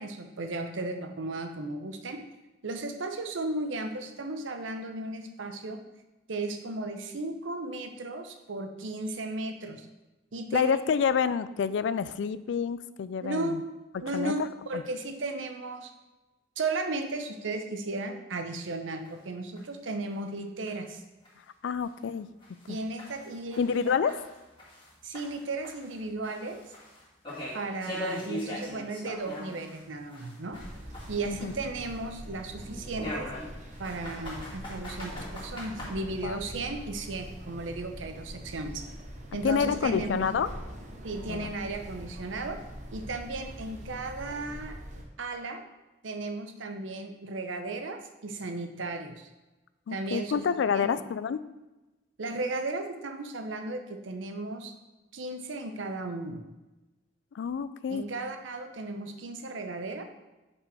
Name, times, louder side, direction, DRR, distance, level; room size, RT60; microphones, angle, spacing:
voice 1, 0.0-2.2 2.6-5.8 6.3-9.9 10.3-10.8 13.2-13.6 14.0-15.9 16.6-21.0 22.7-23.9 25.0-26.7 27.5-30.6 31.1-33.3 33.8-38.9 39.3-40.3 41.0-42.6 42.9-44.8 45.2-45.6 46.0-49.3 49.9-50.4 50.7-51.0 52.2-54.7 55.1-56.4 57.9-60.0, right 2 dB, 90° right, 6 dB, 0.8 m, -35 dB
voice 2, 10.5-13.6 14.1-14.5 14.7-14.8 21.6-22.3 23.6-24.1 31.3-31.5 36.2-36.4 39.4-40.5 41.3-41.5 49.9-51.4 57.3-58.0, left 6 dB, 70° left, 15 dB, 0.3 m, -28 dB
sound 1, 19.1-19.2 19.6-19.7 20.1-20.2 20.7-20.8 21.3-21.4 21.8-21.9 22.4-24.9 25.1-29.8 30.1-32.2 33.0-35.9, left 1 dB, 30° left, 1.9 m, -40 dB
sound 2, 30.5-45.0, equal, 40° right, 1.0 m, -43 dB
5.3 x 5.1 x 4.8 m, 1.1 s
head